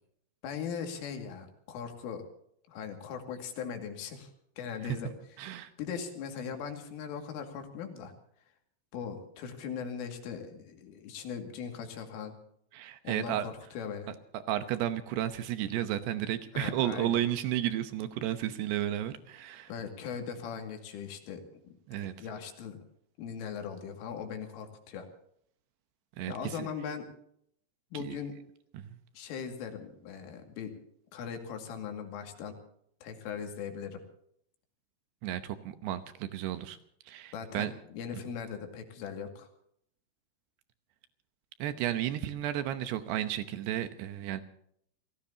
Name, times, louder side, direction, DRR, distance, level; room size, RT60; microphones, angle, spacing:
voice 1, 0.4-2.2 2.7-4.3 4.6-5.1 5.4-5.5 5.8-8.1 8.9-12.4 13.0-14.1 16.5-17.2 19.7-22.8 23.2-25.1 26.3-27.1 27.9-28.3 29.1-30.7 31.1-32.5 33.0-34.0 37.3-39.5, left 7 dB, 75° left, 5 dB, 4.7 m, -39 dB
voice 2, 5.4-5.7 12.7-13.5 14.3-19.7 21.9-22.1 26.2-26.7 28.0-28.2 28.7-29.0 35.2-36.8 37.1-37.7 41.6-44.4, right 12 dB, 75° right, 10 dB, 2.5 m, -33 dB
29.5 x 17.5 x 2.8 m, 0.69 s
omnidirectional pair, 5.9 m